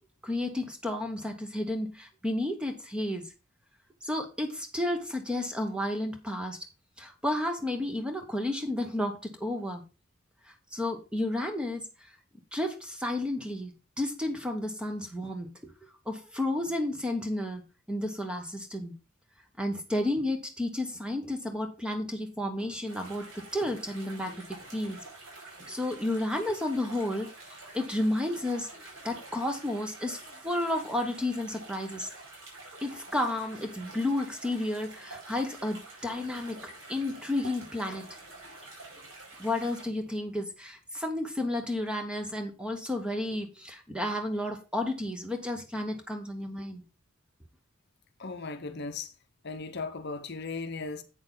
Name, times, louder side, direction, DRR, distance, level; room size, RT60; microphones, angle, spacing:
voice 1, 0.2-3.3 4.0-6.6 7.0-9.8 10.7-11.8 12.5-19.0 19.6-25.0 25.7-27.3 27.7-28.7 29.0-32.1 32.8-38.1 39.4-46.8, left 1 dB, 5° right, 1.1 m, -32 dB
sound 1, 22.8-39.8, right 2 dB, 70° right, 4.9 m, -48 dB
voice 2, 48.2-49.1 49.4-51.0, left 4 dB, 50° left, 0.8 m, -37 dB
8.3 x 6.4 x 3.9 m
head